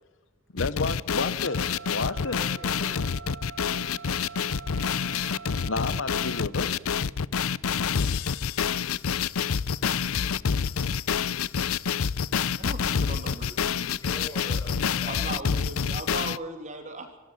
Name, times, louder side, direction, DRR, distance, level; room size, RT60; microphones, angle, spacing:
voice 1, 0.5-2.4 5.6-6.8, left 3 dB, 60° left, 14 dB, 0.9 m, -31 dB
sound 1, 0.6-16.4, left 6 dB, 90° left, 0.6 m, -27 dB
sound 2, 1.4-6.4, right 5 dB, 60° right, 0.9 m, -44 dB
voice 2, 2.2-3.2 14.0-15.3, left 1 dB, 15° left, 1 dB, 7.2 m, -44 dB
voice 3, 12.6-13.9 14.4-14.6 15.1-17.1, right 2 dB, 35° right, 5 dB, 3.1 m, -38 dB
26.5 x 12.5 x 9.7 m, 1.2 s
head